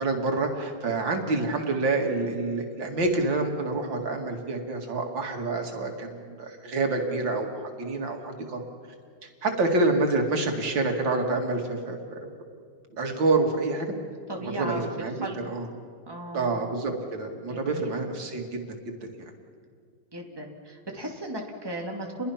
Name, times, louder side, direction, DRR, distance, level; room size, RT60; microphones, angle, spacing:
voice 1, 0.0-8.6 9.4-12.3 13.0-13.9 14.4-15.7 16.3-19.3, right 3 dB, 80° right, 2 dB, 2.8 m, -27 dB
voice 2, 14.3-15.4 16.1-16.6 17.4-17.9 20.1-22.3, right 1 dB, 10° right, 0 dB, 2.5 m, -36 dB
29.5 x 22.0 x 5.8 m, 2.1 s
omnidirectional pair, 2.0 m